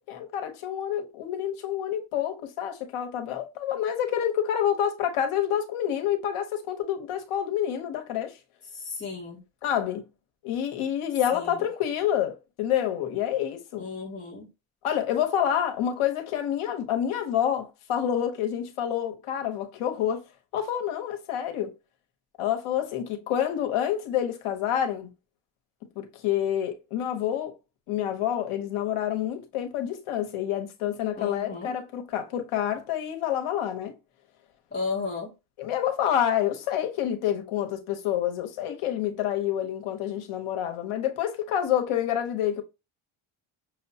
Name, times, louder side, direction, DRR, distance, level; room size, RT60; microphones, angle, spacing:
voice 1, 0.1-8.4 9.6-10.0 10.4-13.9 14.8-20.2 20.5-21.7 22.4-25.1 26.0-27.5 27.9-33.9 35.6-42.6, left 10 dB, 90° left, 1.1 m, -28 dB
voice 2, 8.7-9.4 11.3-11.7 13.8-14.5 31.2-31.7 34.7-35.3, left 4 dB, 20° left, 0.9 m, -34 dB
6.3 x 2.2 x 2.8 m
cardioid pair, 140°, 49 cm